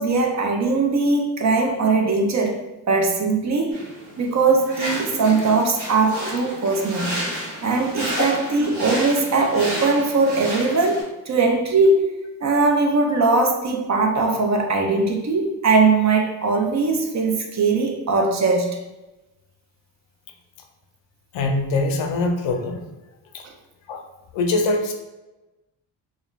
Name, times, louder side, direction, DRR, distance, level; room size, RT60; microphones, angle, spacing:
voice 1, 0.0-2.6 2.9-3.9 4.2-7.2 7.6-12.1 12.4-18.8 23.4-23.5, right 3 dB, 40° right, 3 dB, 0.4 m, -20 dB
sound 1, 3.7-11.0, right 1 dB, 90° right, 1.3 m, -31 dB
voice 2, 21.3-22.8 23.3-23.4 23.9-24.0 24.3-24.9, left 2 dB, 80° left, 4 dB, 0.5 m, -23 dB
2.3 x 2.1 x 2.9 m, 1.1 s
cardioid pair, 85°, 44 cm